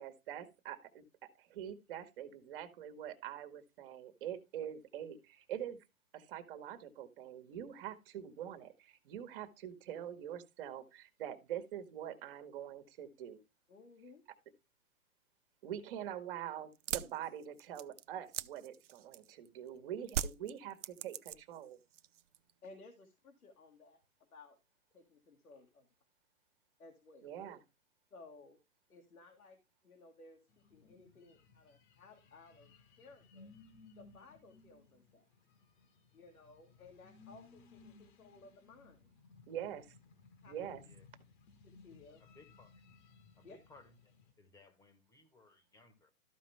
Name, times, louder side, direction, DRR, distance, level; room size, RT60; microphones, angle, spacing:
voice 1, 0.0-5.8 6.1-13.4 15.6-21.8 27.2-27.6 39.5-39.9 40.5-40.8, right 10 dB, 40° right, 1.7 m, -44 dB
voice 2, 13.7-14.2 22.6-24.6 24.9-25.9 26.8-27.3 28.1-28.6 28.9-32.7 33.0-33.5 34.0-35.3 36.1-39.1 40.4-40.6 41.6-42.2 43.4-43.6, left 3 dB, 85° left, 2.1 m, -58 dB
sound 1, 16.7-19.5 20.1-21.6 21.9-22.5, right 9 dB, 60° right, 0.7 m, -40 dB
sound 2, 30.5-44.3, left 4 dB, 35° left, 1.4 m, -61 dB
voice 3, 42.2-42.8 43.4-44.1 44.4-46.1, left 3 dB, 10° left, 1.4 m, -62 dB
13.5 x 5.1 x 3.4 m
hypercardioid pair, 135°, 42 cm